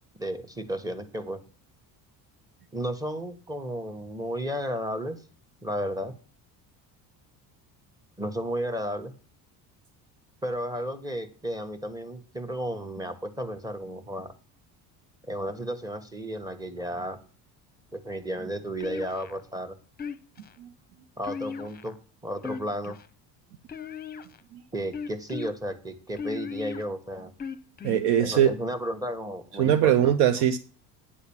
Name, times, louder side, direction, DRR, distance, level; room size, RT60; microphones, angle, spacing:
voice 1, 0.2-1.4 2.7-5.2 5.6-6.1 8.2-9.1 10.4-14.3 15.3-17.2 17.9-19.8 21.2-22.0 22.2-23.0 24.7-27.3 28.2-30.4, equal, 10° right, 9 dB, 1.4 m, -33 dB
sound 1, 18.8-19.4 20.0-20.5 21.2-22.0 22.4-23.1 23.7-24.4 24.9-25.5 26.2-26.8 27.4-28.0, left 6 dB, 20° left, 0.9 m, -37 dB
voice 2, 27.8-28.5 29.6-30.6, right 10 dB, 70° right, 10 dB, 0.8 m, -21 dB
9.7 x 4.0 x 7.2 m, 0.39 s
cardioid pair, 105°, 41 cm